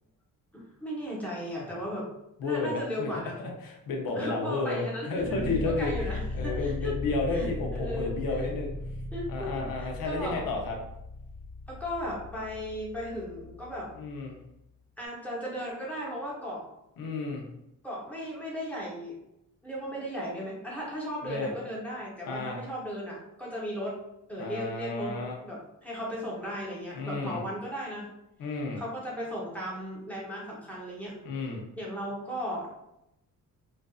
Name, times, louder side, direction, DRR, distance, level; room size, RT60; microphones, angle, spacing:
voice 1, 0.5-2.1 2.4-3.4 4.1-5.2 5.6-6.9 7.3-8.5 9.1-10.4 11.7-13.9 15.0-16.6 17.8-19.2 19.6-24.0 24.3-28.1 28.8-31.1 31.8-32.7, equal, 5° left, -5 dB, 0.8 m, -36 dB
voice 2, 2.4-3.1 3.6-5.9 6.4-8.7 9.3-10.8 13.9-14.4 17.0-17.5 21.3-21.5 22.3-22.6 24.4-25.4 26.9-27.4 28.4-28.8 31.2-31.6, left 3 dB, 80° left, 0 dB, 0.7 m, -32 dB
sound 1, 5.2-14.3, left 1 dB, 45° right, 0.7 m, -37 dB
2.5 x 2.4 x 2.3 m, 0.84 s
cardioid pair, 120°, 34 cm